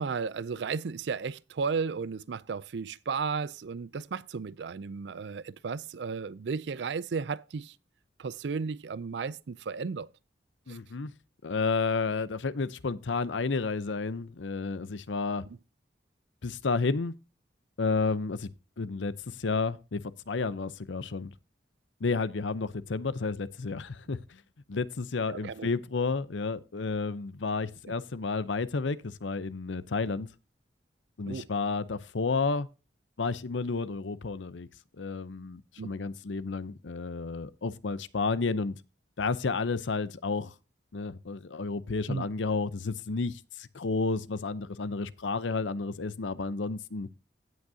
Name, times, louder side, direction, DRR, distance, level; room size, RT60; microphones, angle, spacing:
voice 1, 0.0-7.7 8.2-10.1 10.7-10.8 25.3-25.7 31.3-31.5 35.8-35.9 42.1-42.3, right 5 dB, 70° right, 0.4 m, -34 dB
voice 2, 10.7-11.1 11.4-15.4 16.4-17.1 17.8-18.5 18.8-21.3 22.0-24.4 24.7-30.3 31.2-32.7 33.2-34.7 35.0-38.8 39.2-40.5 40.9-47.1, left 4 dB, 90° left, 0.7 m, -31 dB
16.5 x 6.2 x 2.8 m
head